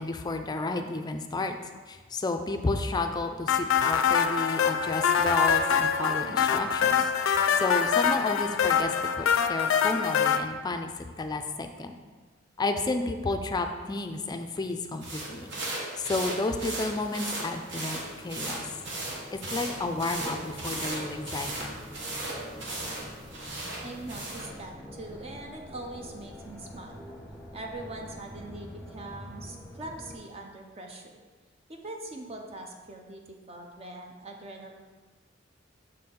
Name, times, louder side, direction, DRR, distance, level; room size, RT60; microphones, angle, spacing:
voice 1, 0.0-1.6 1.9-12.0 12.6-15.5 16.0-18.6 19.3-21.8, left 2 dB, 20° left, 6 dB, 0.4 m, -31 dB
sound 1, 3.5-10.4, left 7 dB, 90° left, 0.4 m, -24 dB
sound 2, 15.0-24.5, right 2 dB, 65° right, 1.2 m, -36 dB
sound 3, 16.7-30.2, left 1 dB, ahead, 1.0 m, -46 dB
voice 2, 23.8-27.1 27.5-31.2 31.7-34.7, right 2 dB, 30° right, 2 dB, 0.5 m, -42 dB
6.4 x 4.3 x 3.7 m, 1.4 s
head